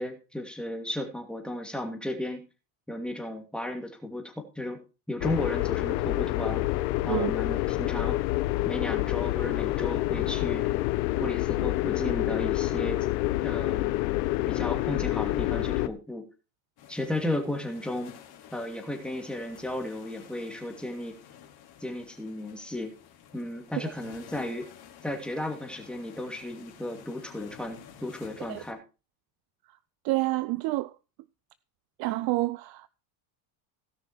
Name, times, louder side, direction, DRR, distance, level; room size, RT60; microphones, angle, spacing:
voice 1, 0.0-2.4 2.9-4.8 5.1-8.2 8.6-10.7 11.2-13.1 13.4-13.9 14.5-16.2 16.9-18.1 18.5-21.1 21.8-22.9 23.3-24.7 25.0-28.8, left 1 dB, ahead, 2.4 m, -34 dB
sound 1, 5.2-15.9, left 18 dB, 75° left, 1.0 m, -27 dB
sound 2, 16.8-28.7, left 9 dB, 50° left, 2.7 m, -51 dB
voice 2, 30.0-30.9 32.0-32.9, right 19 dB, 50° right, 0.5 m, -28 dB
17.0 x 6.0 x 4.5 m
supercardioid pair, 120°, 50 cm